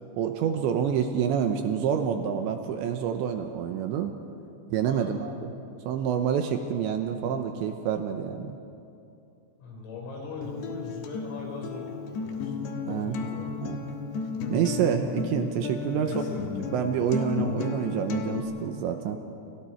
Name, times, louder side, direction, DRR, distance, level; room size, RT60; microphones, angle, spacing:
voice 1, 0.2-4.1 4.7-5.5 5.9-8.6 12.9-13.2 13.6-13.8 14.5-16.1 16.7-19.2, right 8 dB, 75° right, 5 dB, 2.9 m, -27 dB
voice 2, 9.6-12.5 12.9-13.6 16.0-16.4, left 3 dB, 80° left, 0 dB, 7.2 m, -40 dB
Acoustic guitar, 10.4-18.4, left 4 dB, 65° left, 3.2 m, -33 dB
30.0 x 27.5 x 4.5 m, 2.6 s
omnidirectional pair, 5.9 m